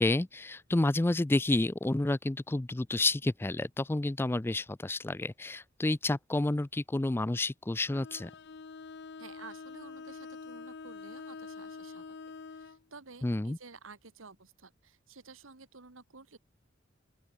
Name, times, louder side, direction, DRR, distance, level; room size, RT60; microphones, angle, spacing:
voice 1, 0.0-8.3 13.2-13.6, left 2 dB, 10° left, 0.3 m, -30 dB
Bowed string instrument, 7.9-12.8, left 4 dB, 55° left, 0.6 m, -46 dB
voice 2, 9.2-12.2 12.5-16.4, right 4 dB, 80° right, 1.8 m, -52 dB
open air
head